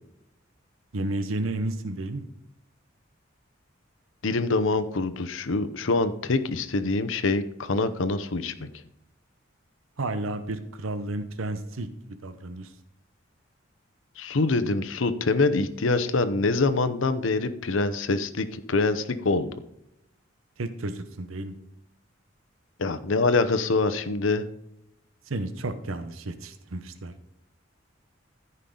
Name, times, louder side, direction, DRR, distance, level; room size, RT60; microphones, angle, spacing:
voice 1, 0.9-2.2 10.0-12.7 20.6-21.5 25.3-27.1, right 2 dB, 90° right, 10 dB, 0.8 m, -32 dB
voice 2, 4.2-8.5 14.2-19.5 22.8-24.5, left 3 dB, 75° left, 11 dB, 0.8 m, -25 dB
14.0 x 5.5 x 3.8 m, 0.80 s
head